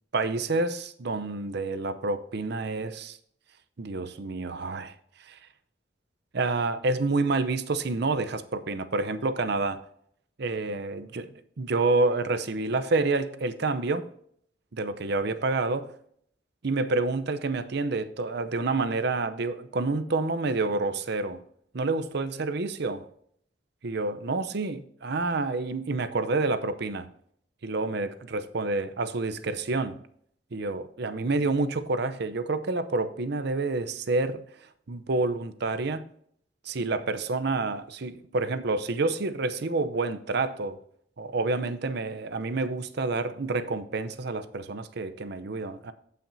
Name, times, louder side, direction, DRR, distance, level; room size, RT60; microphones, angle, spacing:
voice 1, 0.1-3.2 3.8-4.9 5.2-5.4 6.3-9.8 10.4-11.3 11.6-14.1 14.7-15.9 16.6-21.4 21.7-23.1 23.8-27.1 27.6-30.0 30.5-34.4 34.9-36.0 36.6-40.8 41.2-45.9, right 3 dB, 65° right, 0.7 m, -28 dB
16.0 x 5.9 x 2.7 m
head